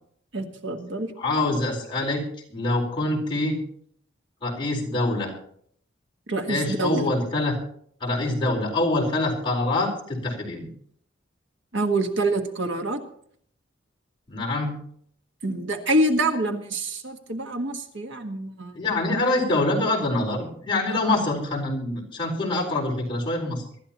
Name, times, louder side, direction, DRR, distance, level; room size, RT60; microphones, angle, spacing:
voice 1, 0.3-1.1 6.3-7.1 11.7-13.0 15.4-18.7 20.9-21.2, right 1 dB, 70° right, 5 dB, 1.5 m, -26 dB
voice 2, 1.2-2.2 2.5-3.6 4.4-5.4 6.5-7.6 8.0-10.7 14.3-14.8 18.7-23.6, left 2 dB, 25° left, -3 dB, 4.4 m, -25 dB
24.0 x 12.5 x 3.0 m, 0.63 s
head